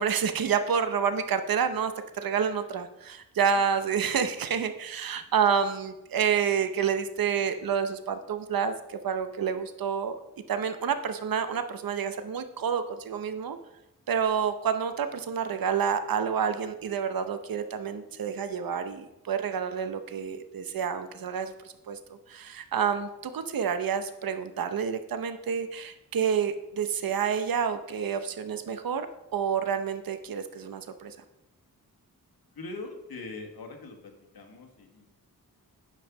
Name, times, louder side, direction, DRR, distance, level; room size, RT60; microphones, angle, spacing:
voice 1, 0.0-10.2 10.5-13.6 14.1-21.5 21.9-22.0 22.3-29.1 29.3-31.1, right 7 dB, 70° right, 9 dB, 0.8 m, -29 dB
voice 2, 32.5-35.1, left 3 dB, 85° left, 3 dB, 1.7 m, -42 dB
9.2 x 5.5 x 6.0 m, 0.92 s
wide cardioid pair, 90°, 36 cm